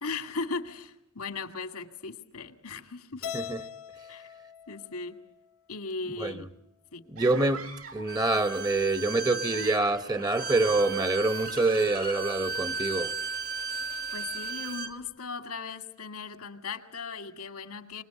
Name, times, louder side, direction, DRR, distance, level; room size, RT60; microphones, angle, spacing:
voice 1, 0.0-3.3 4.1-4.3 4.7-5.2 5.7-6.5 6.9-7.0 14.1-18.0, left 4 dB, 85° left, 2.1 m, -37 dB
Keyboard (musical), 3.2-5.6, left 8 dB, 65° left, 0.9 m, -41 dB
voice 2, 7.1-13.1, right 2 dB, 20° right, 0.9 m, -26 dB
sound 1, 7.2-8.1 9.3-11.7, right 4 dB, 85° right, 4.7 m, -44 dB
Bowed string instrument, 8.1-14.9, right 3 dB, 45° right, 1.4 m, -35 dB
25.0 x 21.0 x 8.4 m
head